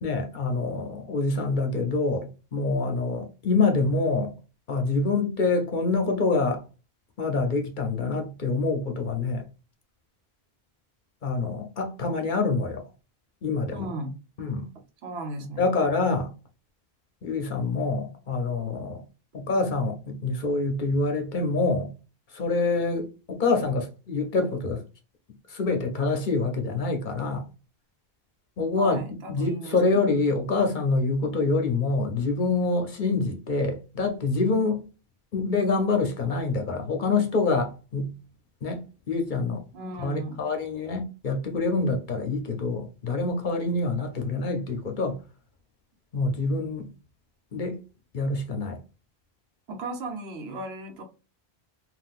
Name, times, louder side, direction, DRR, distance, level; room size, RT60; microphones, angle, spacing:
voice 1, 0.0-4.3 4.7-6.6 7.2-9.5 11.2-12.8 13.4-13.9 14.4-14.7 15.6-16.3 17.2-19.0 19.3-21.9 22.3-24.8 25.5-27.4 28.6-29.0 29.3-34.8 35.3-38.1 38.6-39.6 40.0-45.2 46.1-46.9 47.5-47.8 48.1-48.8, left 3 dB, 55° left, 0.7 m, -26 dB
voice 2, 13.7-14.1 15.0-15.6 28.8-30.1 39.7-40.5 49.7-51.0, right 2 dB, 75° right, 1.0 m, -36 dB
3.6 x 2.4 x 2.4 m
omnidirectional pair, 1.1 m